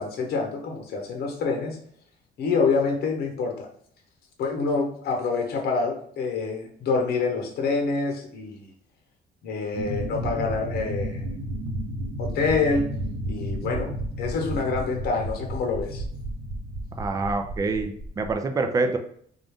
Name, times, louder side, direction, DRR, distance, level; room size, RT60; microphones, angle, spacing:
voice 1, 0.0-1.8 2.4-3.7 4.4-8.7 9.4-11.3 12.2-12.9 13.3-16.0, left 4 dB, 70° left, 2 dB, 1.0 m, -26 dB
sound 1, 9.7-18.3, right 1 dB, 80° right, 0.9 m, -32 dB
voice 2, 17.0-19.0, right 3 dB, 20° right, 5 dB, 0.4 m, -26 dB
3.8 x 2.4 x 3.5 m, 0.62 s
cardioid pair, 110°, 17 cm